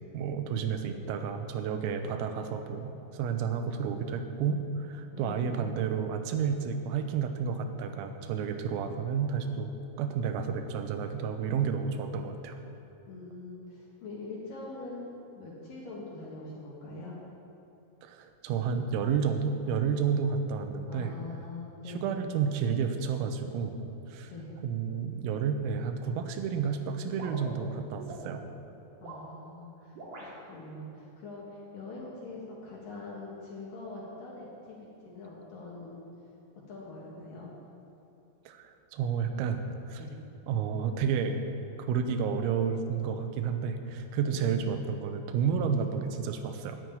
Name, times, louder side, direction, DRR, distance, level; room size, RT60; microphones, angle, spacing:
voice 1, 0.1-9.7 10.0-12.6 18.0-21.1 21.9-23.7 24.1-24.3 24.6-28.4 38.5-39.6 39.9-40.0 40.5-41.4 41.9-46.8, right 6 dB, 90° right, 7 dB, 3.7 m, -31 dB
voice 2, 5.1-5.5 13.1-17.2 20.9-22.1 24.3-24.5 29.0-34.8 35.0-36.1 36.7-37.5 40.0-40.1 44.2-44.5 45.7-45.9, left 2 dB, 55° left, -4 dB, 2.8 m, -43 dB
sound 1, 27.2-28.3 28.9-29.3 29.9-30.3, right 2 dB, 45° right, 2.7 m, -43 dB
11.0 x 9.9 x 9.3 m, 2.8 s
omnidirectional pair, 6.0 m